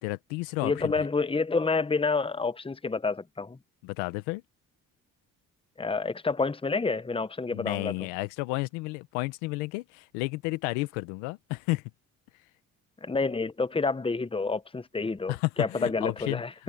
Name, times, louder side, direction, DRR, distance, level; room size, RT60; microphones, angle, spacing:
voice 1, 0.0-0.9 3.8-4.4 7.5-11.8 15.3-16.4, left 22 dB, 90° left, 1.4 m, -32 dB
voice 2, 0.6-3.6 5.8-7.9 13.0-16.5, left 4 dB, 15° left, 1.1 m, -28 dB
supercardioid pair, 60°, 36 cm